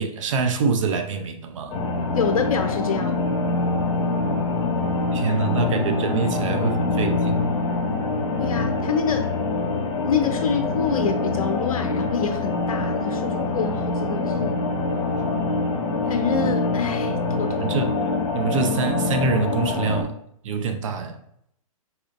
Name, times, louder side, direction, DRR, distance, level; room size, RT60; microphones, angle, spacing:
voice 1, 0.0-1.8 5.1-7.4 17.6-20.1 20.4-21.2, right 5 dB, 60° right, 7 dB, 0.5 m, -25 dB
sound 1, 1.7-20.0, left 3 dB, 45° left, 1.2 m, -25 dB
voice 2, 2.1-3.2 8.4-9.3 10.0-14.7 16.1-17.8, left 6 dB, 75° left, 6 dB, 0.5 m, -26 dB
4.1 x 2.5 x 2.5 m, 0.71 s
hypercardioid pair, 125°, 18 cm